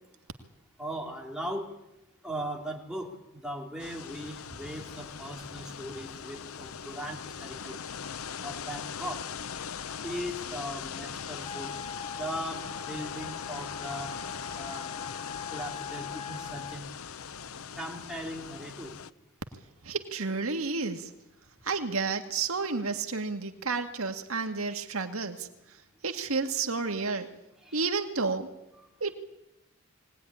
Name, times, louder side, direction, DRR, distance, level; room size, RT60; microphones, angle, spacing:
voice 1, 0.8-1.7 2.2-7.7 8.4-9.2 10.0-11.7 12.2-14.1 14.5-14.9 15.5-16.9 17.8-18.9 27.6-27.9, equal, 5° right, 0 dB, 3.8 m, -38 dB
sound 1, 3.8-19.1, left 7 dB, 80° left, 0.8 m, -40 dB
Wind instrument woodwind instrument, 11.4-16.8, left 6 dB, 25° left, 1.0 m, -42 dB
voice 2, 19.8-21.1 21.6-25.5 26.0-27.3 27.7-28.5 29.0-29.1, right 4 dB, 75° right, 6 dB, 1.9 m, -31 dB
22.0 x 18.5 x 10.0 m, 0.94 s
head